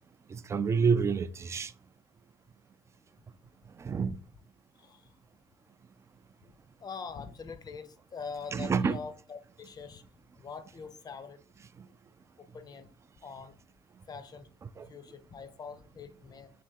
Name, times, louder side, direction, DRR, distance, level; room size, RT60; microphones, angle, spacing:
voice 1, 0.3-1.7 3.8-4.2 8.5-9.0 11.8-11.9 14.8-14.9, right 5 dB, 25° right, 0.3 m, -28 dB
voice 2, 4.8-5.1 6.8-10.0 10.4-11.4 12.4-12.9 13.2-13.5 14.1-14.5 14.8-16.5, left 5 dB, 30° left, 0.6 m, -43 dB
3.4 x 2.9 x 4.3 m
hypercardioid pair, 70°, 12 cm